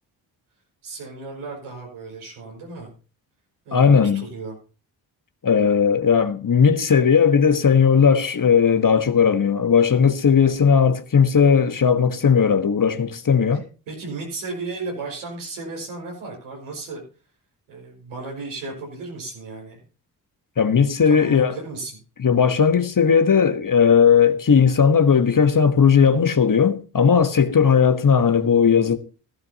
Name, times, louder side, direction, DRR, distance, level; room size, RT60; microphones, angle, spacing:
voice 1, 0.8-2.9 3.7-4.6 13.5-17.0 17.7-19.8 21.1-22.0, right 3 dB, 90° right, 5.4 m, -34 dB
voice 2, 3.7-4.2 5.4-13.6 20.6-21.5 22.2-29.0, left 6 dB, 40° left, 1.3 m, -17 dB
15.5 x 13.5 x 2.9 m
supercardioid pair, 45°, 48 cm